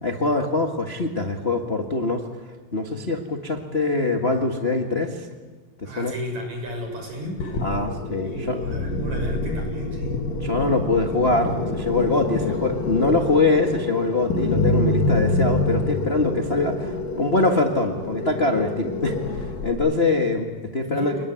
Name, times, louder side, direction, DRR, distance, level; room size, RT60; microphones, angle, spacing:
voice 1, 0.0-2.2 2.7-5.3 5.8-6.1 7.6-8.6 10.4-20.5 20.7-21.1, left 3 dB, 35° left, 2 dB, 1.0 m, -23 dB
voice 2, 5.8-7.5 8.2-10.2 10.8-11.3 12.4-12.6 20.7-21.3, equal, 50° right, 2 dB, 8.0 m, -33 dB
sound 1, 7.4-19.7, left 2 dB, 70° left, 4.3 m, -26 dB
29.5 x 20.0 x 9.5 m, 1.4 s
omnidirectional pair, 4.1 m